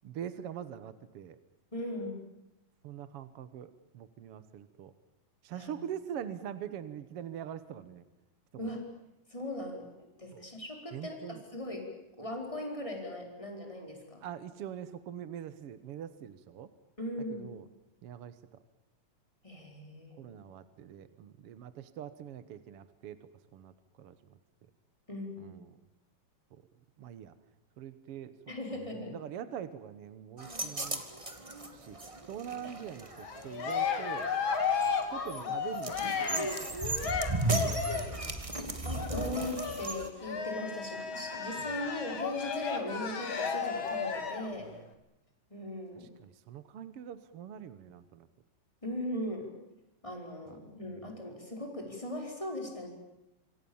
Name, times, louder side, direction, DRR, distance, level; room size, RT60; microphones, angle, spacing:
voice 1, 0.0-1.4 2.8-4.9 5.4-8.0 8.5-8.8 10.3-10.4 10.9-11.4 14.2-16.7 17.3-17.7 18.0-18.6 20.2-24.4 25.4-25.7 26.5-26.6 27.0-27.4 27.8-28.4 28.7-31.0 31.7-32.0 32.3-34.3 35.0-38.5 41.6-41.8 44.6-44.9 45.9-48.3 50.5-50.6 51.0-51.1, right 9 dB, 60° right, 13 dB, 1.6 m, -44 dB
voice 2, 1.7-2.2 5.6-5.7 8.6-8.9 9.3-11.9 12.2-14.2 17.0-17.4 19.4-20.3 25.1-25.6 28.5-29.2 38.8-44.7 45.5-46.1 48.8-49.6 50.0-52.9, left 1 dB, 10° left, 2 dB, 4.7 m, -39 dB
sound 1, 30.4-40.1, right 2 dB, 15° right, 1.4 m, -36 dB
Cheering, 33.2-38.2 38.9-44.5, left 5 dB, 40° left, 2.7 m, -34 dB
26.5 x 25.5 x 7.2 m, 0.95 s
omnidirectional pair, 3.8 m